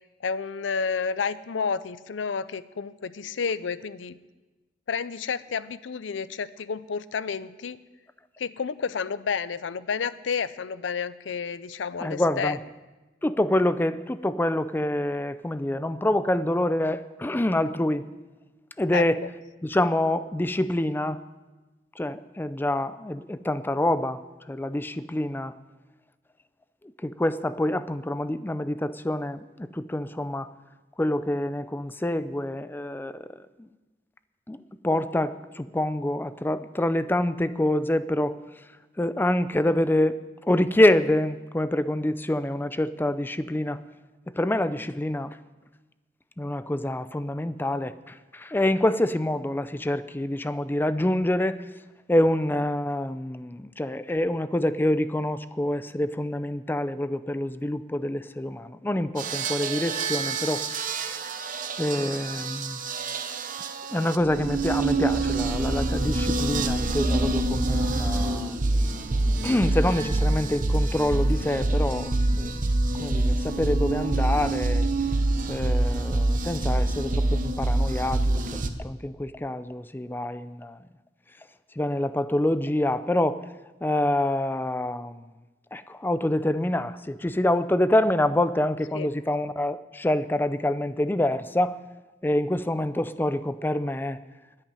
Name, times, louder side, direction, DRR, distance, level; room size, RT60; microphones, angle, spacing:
voice 1, 0.2-4.1 4.9-7.8 8.4-12.6 18.9-19.0 88.9-89.1, left 5 dB, 85° left, 16 dB, 0.5 m, -30 dB
voice 2, 12.0-12.6 13.2-18.0 18.8-19.2 19.6-21.2 22.0-24.2 24.5-25.5 27.0-30.5 31.0-33.2 34.5-34.6 34.8-38.3 39.0-40.2 40.5-43.8 44.4-45.3 46.4-51.6 52.1-60.6 61.8-62.8 63.9-68.5 69.4-72.7 73.0-74.9 75.5-78.2 78.8-80.8 81.8-83.4 83.8-85.2 85.7-91.8 92.2-94.2, left 1 dB, 10° left, 14 dB, 0.4 m, -26 dB
sound 1, 59.2-78.7, right 2 dB, 45° right, 0.8 m, -26 dB
10.5 x 8.2 x 9.9 m, 1.2 s
head